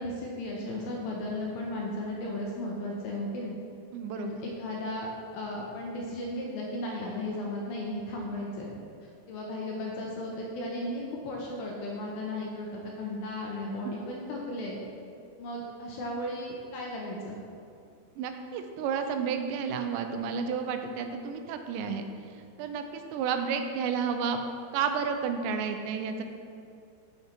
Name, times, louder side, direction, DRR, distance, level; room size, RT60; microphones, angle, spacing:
voice 1, 0.0-3.5 4.1-8.7 9.3-14.8 15.4-17.4, left 1 dB, 80° left, -2 dB, 2.3 m, -35 dB
voice 2, 3.9-4.3 18.2-24.4 24.7-26.2, right 6 dB, 85° right, 6 dB, 2.8 m, -31 dB
7.2 x 6.5 x 4.3 m, 2.5 s
omnidirectional pair, 5.0 m